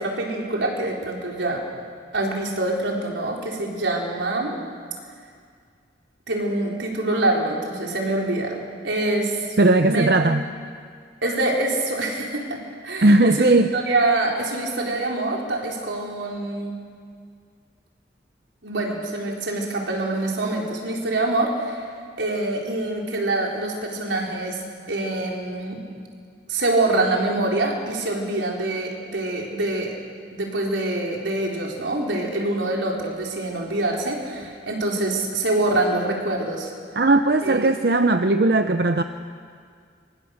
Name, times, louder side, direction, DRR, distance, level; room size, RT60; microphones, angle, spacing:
voice 1, 0.0-1.6 2.1-4.6 6.3-8.5 8.8-9.5 9.8-10.1 11.2-12.6 12.8-16.7 18.6-21.9 22.2-24.6 24.9-25.8 26.5-29.9 30.3-36.7 37.4-37.7, right 2 dB, 80° right, -1 dB, 4.2 m, -25 dB
voice 2, 9.6-10.4 13.0-13.7 37.0-39.0, right 2 dB, 55° right, 8 dB, 0.7 m, -17 dB
25.0 x 22.5 x 6.6 m, 2.1 s
head